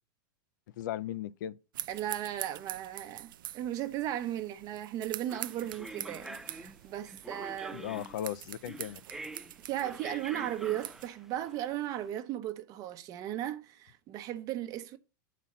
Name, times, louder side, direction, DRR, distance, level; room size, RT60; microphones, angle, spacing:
voice 1, 0.8-1.6 7.7-9.0, left 11 dB, 65° left, 0.5 m, -37 dB
sound 1, 1.7-11.1, right 13 dB, 80° right, 0.5 m, -45 dB
voice 2, 1.9-7.9 9.7-15.0, right 12 dB, 35° right, 0.9 m, -36 dB
sound 2, 5.3-12.0, right 2 dB, 5° right, 0.4 m, -46 dB
8.3 x 4.2 x 7.2 m
supercardioid pair, 155°, 11 cm